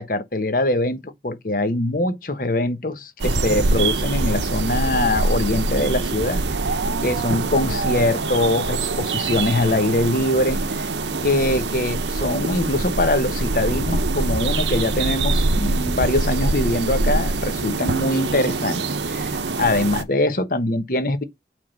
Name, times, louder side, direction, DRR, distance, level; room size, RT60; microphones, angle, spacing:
voice 1, 0.0-6.4 6.7-10.9 11.2-18.8 19.1-21.2, left 1 dB, 50° left, 1.1 m, -23 dB
sound 1, 3.2-20.0, right 3 dB, 90° right, 0.8 m, -24 dB
8.4 x 3.6 x 4.0 m
head